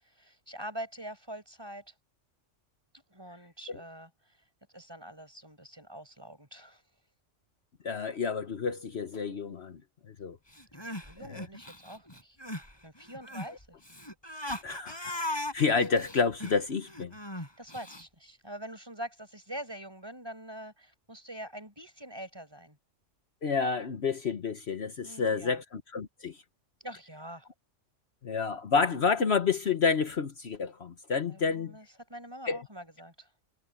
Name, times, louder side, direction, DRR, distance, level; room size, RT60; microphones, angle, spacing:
voice 1, 0.0-1.9 3.1-4.4 4.7-6.8 10.7-12.4 12.8-13.8 17.3-22.8 25.0-25.6 26.8-27.5 31.3-33.3, right 1 dB, 20° right, 6.0 m, -44 dB
voice 2, 7.8-9.8 10.1-10.4 11.2-11.5 13.5-13.6 14.6-17.1 23.4-26.4 28.2-31.8 32.5-32.6, left 5 dB, 60° left, 1.3 m, -29 dB
Crying sobbing, 10.5-12.7 13.0-18.0, left 1 dB, 20° left, 5.2 m, -38 dB
omnidirectional pair, 1.3 m